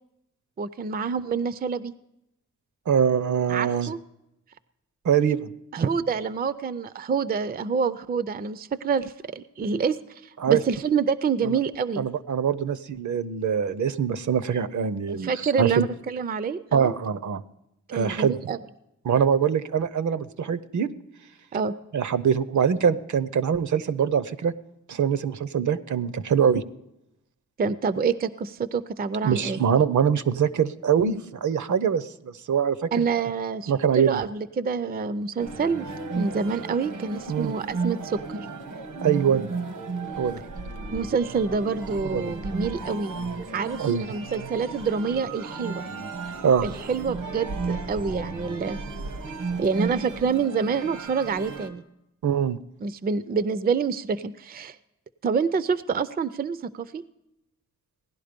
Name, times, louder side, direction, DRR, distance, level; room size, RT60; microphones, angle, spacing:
voice 1, 0.6-1.9 3.5-4.0 5.7-10.0 10.2-12.1 15.1-16.9 17.9-18.6 21.5-21.8 27.6-29.6 32.9-35.9 36.1-38.5 40.9-43.1 43.5-45.8 46.6-48.8 49.6-51.8 52.8-54.8 55.2-57.0, right 5 dB, 30° right, 15 dB, 0.4 m, -27 dB
voice 2, 2.9-3.9 5.0-5.5 10.4-10.6 11.4-11.6 12.0-15.9 16.7-17.4 17.9-18.4 19.0-20.9 21.9-24.5 24.9-26.6 29.2-33.0 33.7-34.1 37.3-37.5 39.0-39.5 40.2-40.4 42.0-42.3 43.8-44.0 46.4-46.7 52.2-52.6, right 7 dB, 70° right, 15 dB, 0.7 m, -23 dB
sound 1, 35.4-51.7, right 4 dB, 90° right, 1.4 m, -34 dB
17.0 x 11.5 x 5.1 m, 0.86 s
wide cardioid pair, 160°, 31 cm